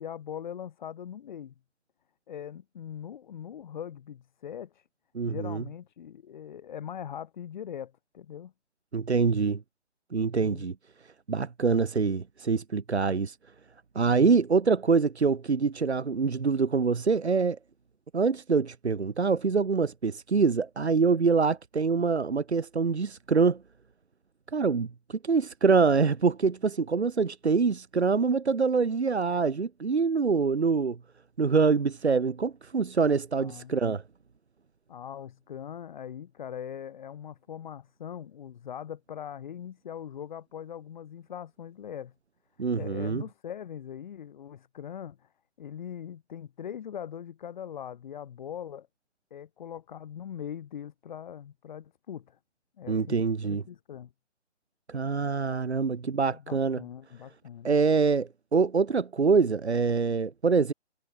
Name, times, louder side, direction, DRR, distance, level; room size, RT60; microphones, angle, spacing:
voice 1, 0.0-1.5 2.3-4.9 5.3-8.5 10.4-10.7 33.4-33.7 34.9-42.1 42.8-45.3 45.6-48.9 49.3-52.4 52.8-53.2 53.4-54.1 56.3-57.8, left 9 dB, 40° left, 7.3 m, -41 dB
voice 2, 5.1-5.6 8.9-9.6 10.1-10.7 11.3-13.4 13.9-17.6 18.1-23.6 24.5-31.0 31.4-34.0 42.6-43.2 52.9-53.6 54.9-56.8 57.6-60.7, right 5 dB, 65° right, 4.3 m, -25 dB
figure-of-eight pair, 145°, 36 cm